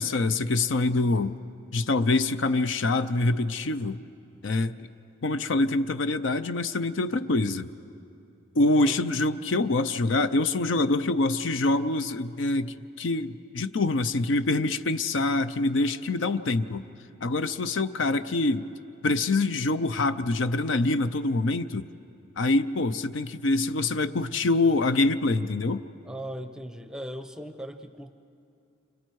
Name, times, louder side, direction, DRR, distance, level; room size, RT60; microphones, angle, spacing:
voice 1, 0.0-1.4 1.7-4.0 4.4-4.7 5.2-7.7 8.5-16.8 17.2-18.7 19.0-21.9 22.4-25.8, left 2 dB, 65° left, 12 dB, 0.6 m, -25 dB
voice 2, 26.1-28.1, equal, 5° right, 8 dB, 0.7 m, -38 dB
29.5 x 26.0 x 4.7 m, 2.6 s
head